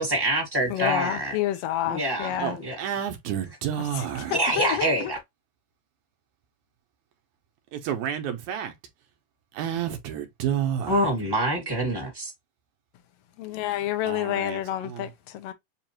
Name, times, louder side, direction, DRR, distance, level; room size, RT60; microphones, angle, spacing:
voice 1, 0.0-1.3 1.9-2.7 4.3-5.2 10.9-12.3, right 1 dB, 10° right, 1.2 m, -26 dB
voice 2, 0.7-2.6 4.3-5.1 13.4-15.5, left 12 dB, 80° left, 1.4 m, -29 dB
voice 3, 2.4-4.4 7.7-8.8 9.5-11.1 13.6-15.1, right 9 dB, 75° right, 2.0 m, -31 dB
7.3 x 2.4 x 2.9 m
omnidirectional pair, 3.8 m